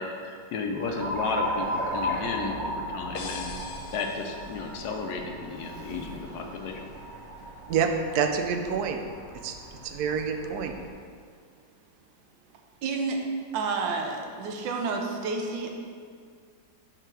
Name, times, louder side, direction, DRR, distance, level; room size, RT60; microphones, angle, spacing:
voice 1, 0.0-6.8, left 4 dB, 70° left, 3 dB, 1.1 m, -33 dB
Alarm, 0.8-10.9, equal, 50° right, 1.0 m, -36 dB
sound 1, 3.2-5.0, left 5 dB, 90° left, 1.3 m, -42 dB
voice 2, 7.7-9.0 9.4-9.6 9.8-10.7, right 6 dB, 70° right, 6 dB, 1.0 m, -27 dB
voice 3, 12.8-13.2 13.5-15.7, right 4 dB, 90° right, 2 dB, 1.5 m, -30 dB
5.6 x 3.9 x 6.0 m, 2.1 s
omnidirectional pair, 2.0 m